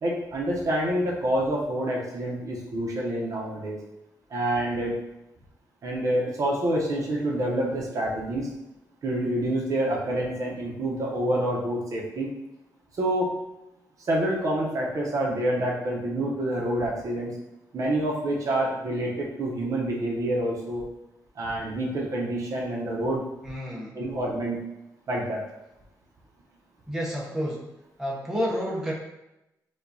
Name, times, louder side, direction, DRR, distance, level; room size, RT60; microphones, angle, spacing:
voice 1, 0.0-3.8 4.3-5.0 5.8-8.5 9.0-12.3 13.0-13.4 14.1-17.3 17.7-20.8 21.4-23.2 23.9-24.6 25.1-25.4, right 1 dB, 50° right, -3 dB, 0.7 m, -27 dB
voice 2, 23.4-24.1 26.9-27.7 28.0-28.9, equal, 5° right, -5 dB, 0.6 m, -30 dB
4.6 x 2.3 x 2.6 m, 0.92 s
wide cardioid pair, 160°, 7 cm